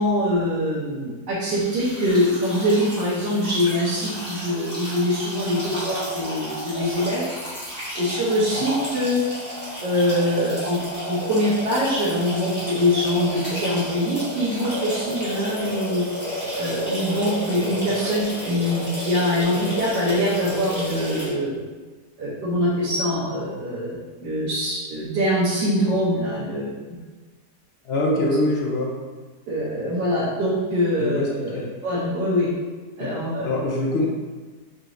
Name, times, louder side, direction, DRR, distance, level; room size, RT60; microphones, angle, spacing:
voice 1, 0.0-7.2 7.9-9.2 9.8-10.8 11.0-16.0 16.6-21.6 22.2-26.7 29.5-32.5 33.0-33.5, equal, 80° right, -8 dB, 1.5 m, -23 dB
sound 1, 1.5-21.3, equal, 5° left, 1.3 m, -32 dB
voice 2, 27.8-28.9 31.0-31.7 33.0-33.1 33.4-34.1, left 1 dB, 80° left, -1 dB, 0.5 m, -24 dB
5.1 x 2.9 x 2.5 m, 1.3 s
omnidirectional pair, 1.8 m